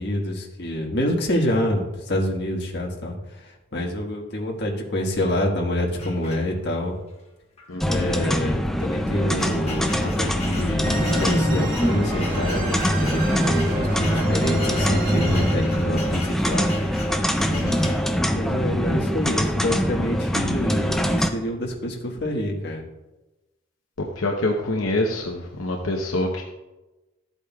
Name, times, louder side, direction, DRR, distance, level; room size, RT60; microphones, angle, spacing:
voice 1, 0.0-6.9 7.9-16.7 18.3-22.8, left 1 dB, 55° left, 0 dB, 1.5 m, -27 dB
sound 1, 6.0-6.8 7.6-7.7 8.0-8.1 8.8-18.1, left 2 dB, 30° left, 1.3 m, -38 dB
voice 2, 7.7-8.0 17.5-17.9 24.2-26.4, left 2 dB, 75° left, 1 dB, 0.8 m, -26 dB
sound 2, 7.8-21.3, equal, ahead, 0.4 m, -24 dB
sound 3, 10.8-16.0, right 1 dB, 45° right, 1.6 m, -28 dB
14.0 x 8.2 x 2.3 m, 1.1 s
head